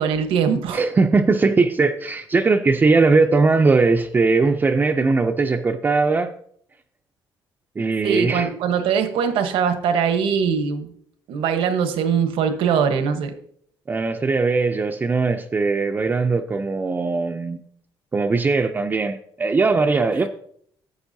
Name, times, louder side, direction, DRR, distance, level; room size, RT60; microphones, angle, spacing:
voice 1, 0.0-0.8 8.0-10.9 11.3-13.3, right 7 dB, 80° right, 8 dB, 1.1 m, -21 dB
voice 2, 0.7-6.3 7.8-8.5 13.9-17.6 18.1-20.3, right 4 dB, 20° right, 4 dB, 0.5 m, -19 dB
11.5 x 8.0 x 2.7 m, 0.64 s
cardioid pair, 130°, 9 cm